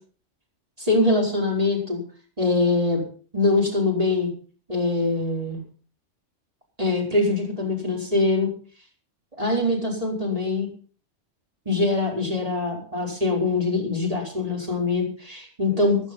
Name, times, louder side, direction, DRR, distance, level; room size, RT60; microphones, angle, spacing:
voice 1, 0.8-2.0 2.4-3.0 3.3-4.3 4.7-5.6 6.8-8.5 9.4-10.7 11.7-16.0, left 2 dB, 30° right, -1 dB, 5.3 m, -23 dB
15.5 x 11.0 x 5.5 m, 0.41 s
omnidirectional pair, 1.3 m